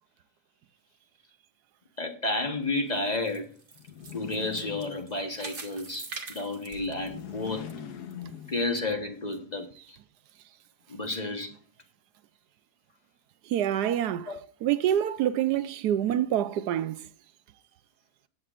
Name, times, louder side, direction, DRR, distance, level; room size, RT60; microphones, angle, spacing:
voice 1, 2.0-3.5 4.1-7.7 8.5-10.0 10.9-11.6 14.3-14.4, left 2 dB, 30° left, 1.2 m, -31 dB
sound 1, 2.8-7.7 8.1-8.2 8.8-8.9, right 4 dB, 35° right, 1.4 m, -44 dB
sound 2, 3.8-5.5 6.8-9.0, left 8 dB, 80° left, 1.5 m, -42 dB
sound 3, 6.7-8.8, right 1 dB, 50° left, 4.1 m, -53 dB
voice 2, 13.5-14.3 14.6-17.0, right 11 dB, 85° right, 1.3 m, -26 dB
18.5 x 7.8 x 2.5 m
omnidirectional pair, 1.7 m